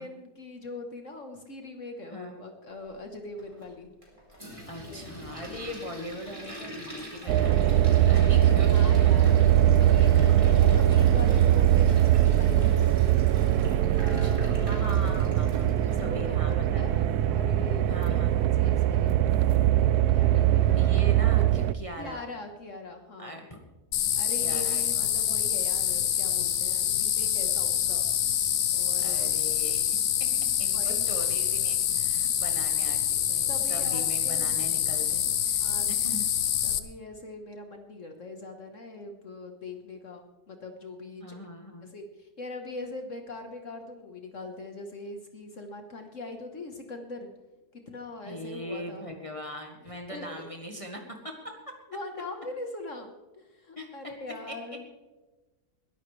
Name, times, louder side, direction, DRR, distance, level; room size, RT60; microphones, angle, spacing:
voice 1, 0.0-3.9 4.4-4.6 4.8-5.2 8.0-13.2 14.0-14.8 15.7-20.9 22.0-23.5 24.1-28.1 28.7-29.3 30.7-31.1 33.5-34.6 35.6-35.9 36.6-41.4 41.8-47.3 47.7-49.1 50.1-50.4 51.9-54.8, left 2 dB, 55° left, 5 dB, 1.6 m, -42 dB
Toilet flush, 3.4-16.1, equal, 20° right, 4.1 m, -45 dB
voice 2, 4.7-8.7 10.1-10.5 14.0-15.7 16.0-16.9 17.9-18.3 20.8-22.2 23.2-23.6 24.3-25.1 29.0-30.3 30.6-36.3 41.2-41.9 48.2-51.5 53.8-53.9 54.5-54.6, equal, 20° left, 2 dB, 1.6 m, -41 dB
sound 1, 7.3-21.7, right 11 dB, 80° right, 1.1 m, -21 dB
sound 2, 23.9-36.8, left 10 dB, 75° left, 1.3 m, -26 dB
22.0 x 12.5 x 3.3 m, 1.2 s
omnidirectional pair, 1.6 m